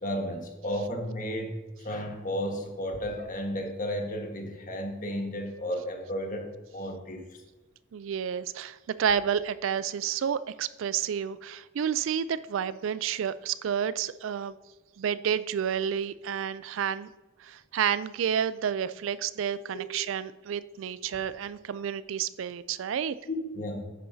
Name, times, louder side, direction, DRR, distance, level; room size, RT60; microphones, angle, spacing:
voice 1, 0.0-7.2 19.7-19.8 23.2-23.9, equal, 40° left, 3 dB, 1.4 m, -33 dB
voice 2, 7.9-14.5 15.0-17.1 17.4-23.2, right 8 dB, 70° right, 16 dB, 0.3 m, -30 dB
10.0 x 8.6 x 2.7 m, 1.2 s
head